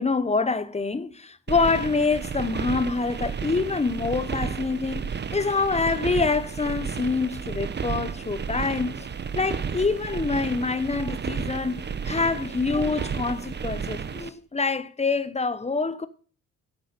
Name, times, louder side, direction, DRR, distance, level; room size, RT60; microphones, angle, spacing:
voice 1, 0.0-9.1 9.3-16.1, left 4 dB, 20° left, 1.0 m, -26 dB
sound 1, 1.5-14.3, right 6 dB, 30° right, 0.9 m, -32 dB
9.4 x 8.0 x 6.8 m
supercardioid pair, 65°, 34 cm